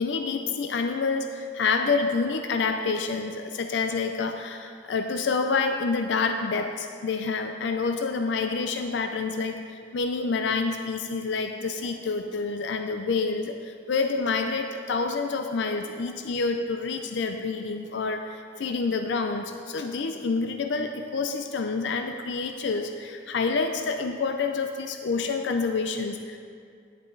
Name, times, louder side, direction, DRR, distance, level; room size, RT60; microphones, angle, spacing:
voice 1, 0.0-26.4, left 4 dB, 65° left, 6 dB, 0.4 m, -28 dB
10.5 x 7.3 x 3.9 m, 2.3 s
head